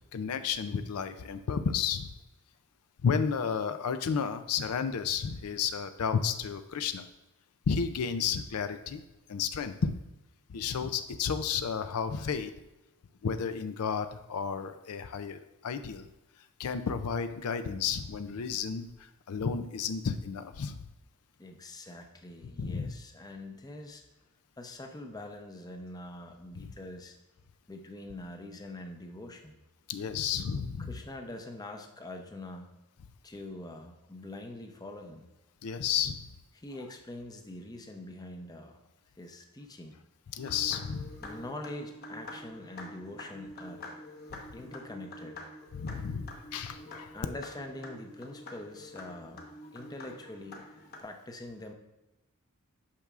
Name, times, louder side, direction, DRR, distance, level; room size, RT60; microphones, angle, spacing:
voice 1, 0.1-2.1 3.0-7.1 7.7-9.0 9.3-9.9 10.5-12.5 13.2-16.1 16.6-20.8 22.6-22.9 26.6-26.7 29.9-30.9 35.6-36.3 40.3-41.2 45.7-47.1, left 6 dB, 80° left, 10 dB, 0.4 m, -32 dB
voice 2, 21.4-24.0 24.6-27.2 27.7-29.6 30.9-32.7 33.2-35.3 36.5-38.8 39.2-40.0 41.2-43.8 44.5-45.4 47.1-49.4 49.7-50.6 51.0-51.7, left 1 dB, 15° left, 4 dB, 0.6 m, -44 dB
sound 1, 40.4-51.0, left 1 dB, 45° left, 1.0 m, -47 dB
8.4 x 6.1 x 2.4 m, 1.0 s
head